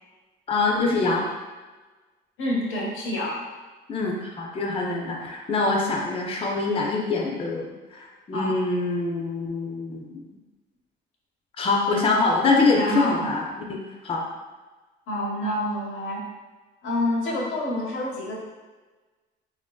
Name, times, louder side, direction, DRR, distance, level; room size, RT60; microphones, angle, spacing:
voice 1, 0.5-1.3 3.9-10.2 11.6-13.4 13.7-14.2, left 3 dB, 30° left, -1 dB, 0.4 m, -24 dB
voice 2, 2.4-3.4 8.3-8.5 12.7-13.3 15.1-16.2 16.8-18.4, left 1 dB, 85° left, -3 dB, 0.7 m, -27 dB
2.8 x 2.6 x 2.2 m, 1.3 s
cardioid pair, 90°, 20 cm